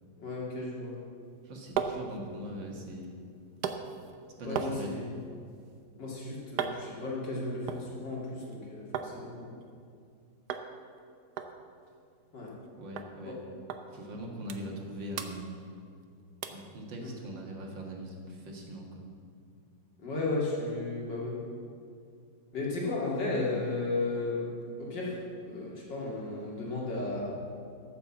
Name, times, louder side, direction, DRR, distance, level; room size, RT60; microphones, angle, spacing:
voice 1, 0.2-1.0 4.4-5.2 6.0-9.5 12.3-12.5 13.2-13.4 17.0-17.1 20.0-21.4 22.5-24.5 24.8-25.1 25.5-27.4, left 2 dB, 80° left, -4 dB, 3.2 m, -34 dB
sound 1, 1.2-9.1 9.5-10.1 10.5-10.7 11.0-11.1 11.4-12.7 13.0-13.1 13.7-13.8 14.2-14.9 15.1-16.0 16.4-16.7 17.2-17.3, right 7 dB, 70° right, 1.3 m, -39 dB
voice 2, 1.5-3.1 4.4-5.0 12.8-13.4 13.9-15.4 16.5-19.0, equal, 85° right, 0 dB, 2.5 m, -41 dB
14.0 x 7.0 x 7.3 m, 2.4 s
omnidirectional pair, 1.9 m